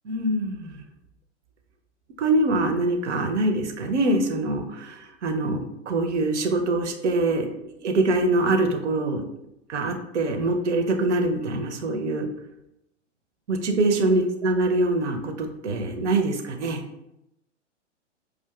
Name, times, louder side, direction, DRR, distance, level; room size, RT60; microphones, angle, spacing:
voice 1, 0.1-0.8 2.2-7.5 7.8-9.3 9.7-12.3 13.5-16.8, right 2 dB, 70° right, 4 dB, 0.7 m, -24 dB
4.9 x 2.5 x 2.3 m, 0.86 s
figure-of-eight pair, 105°, 36 cm